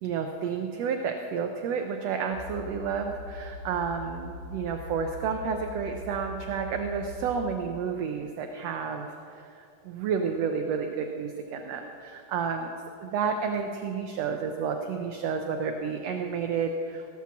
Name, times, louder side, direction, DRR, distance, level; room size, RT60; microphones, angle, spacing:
voice 1, 0.0-9.2 9.6-12.7 13.0-17.1, right 6 dB, 75° right, 5 dB, 1.5 m, -31 dB
sound 1, 2.3-7.6, left 2 dB, 80° left, 3.1 m, -42 dB
17.0 x 6.0 x 7.1 m, 2.5 s
omnidirectional pair, 3.6 m